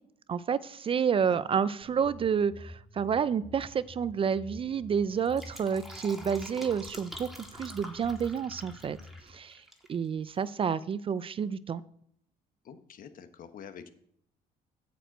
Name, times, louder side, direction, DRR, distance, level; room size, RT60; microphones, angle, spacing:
voice 1, 0.3-9.0 9.3-9.6 9.9-11.8, right 7 dB, 35° right, 17 dB, 0.4 m, -29 dB
voice 2, 1.1-1.6 12.6-13.9, left 7 dB, 55° left, 10 dB, 1.1 m, -47 dB
sound 1, 1.8-9.2, left 2 dB, 20° left, 1.1 m, -49 dB
Fill (with liquid), 5.1-9.9 10.2-10.3, equal, ahead, 1.9 m, -47 dB
8.8 x 5.1 x 7.8 m, 0.70 s
cardioid pair, 110°, 17 cm